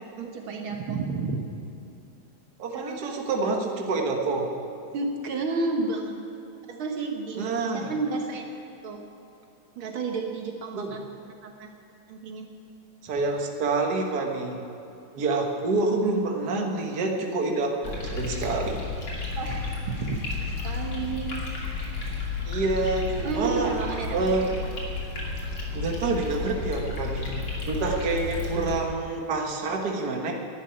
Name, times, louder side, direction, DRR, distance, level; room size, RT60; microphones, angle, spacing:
voice 1, 0.2-1.4 2.7-3.0 4.9-6.1 6.7-8.5 8.8-9.0 9.8-11.0 11.4-11.7 12.1-12.5 19.4-21.3 23.2-24.2 24.4-24.5, right 3 dB, 70° right, 2 dB, 2.0 m, -31 dB
voice 2, 2.6-4.5 7.4-7.9 10.8-10.9 13.0-14.6 15.1-18.8 22.5-23.7 24.1-24.5 25.7-27.3 27.7-30.3, right 3 dB, 50° right, 1 dB, 1.8 m, -27 dB
sound 1, 17.8-28.8, left 3 dB, 70° left, 3.6 m, -32 dB
12.0 x 10.5 x 9.8 m, 2.9 s
omnidirectional pair, 2.4 m